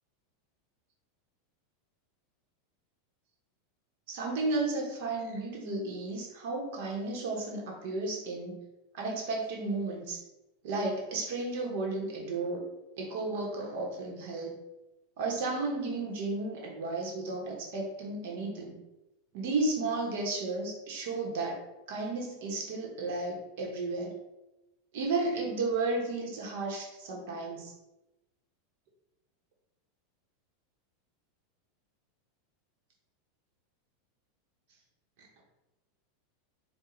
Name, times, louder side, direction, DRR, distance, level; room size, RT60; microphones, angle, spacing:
voice 1, 4.1-8.6 8.9-10.2 10.6-12.6 13.0-14.5 15.2-18.8 19.3-21.6 21.9-24.1 24.9-27.7, right 3 dB, 65° right, 0 dB, 1.1 m, -33 dB
4.3 x 2.4 x 3.9 m, 0.97 s
supercardioid pair, 145°, 0 cm